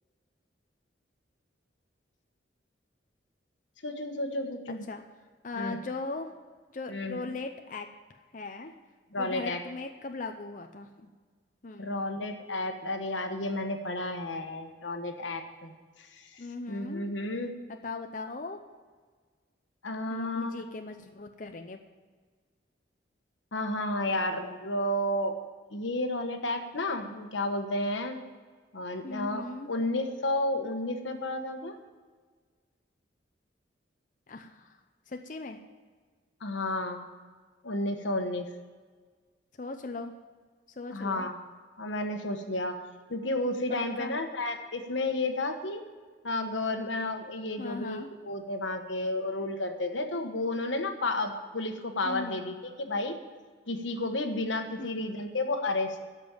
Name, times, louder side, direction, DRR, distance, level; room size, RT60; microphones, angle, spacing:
voice 1, 3.8-4.9 5.6-5.8 6.9-7.3 9.1-9.6 11.8-17.5 19.8-20.6 23.5-25.3 25.7-28.2 28.7-31.8 36.4-37.1 37.6-38.5 40.9-41.3 41.8-42.8 43.1-45.8 46.2-53.1 53.7-56.0, left 2 dB, 90° left, 6 dB, 1.3 m, -32 dB
voice 2, 5.4-6.3 6.7-7.9 8.3-8.7 9.2-11.1 11.6-12.0 16.4-17.1 17.7-18.6 20.1-21.8 29.0-29.7 34.3-34.8 35.1-35.6 39.6-40.1 40.8-41.3 43.7-44.1 47.6-48.1 52.0-52.4 54.8-55.2, left 3 dB, 45° left, 5 dB, 0.6 m, -39 dB
13.0 x 5.4 x 8.9 m, 1.5 s
head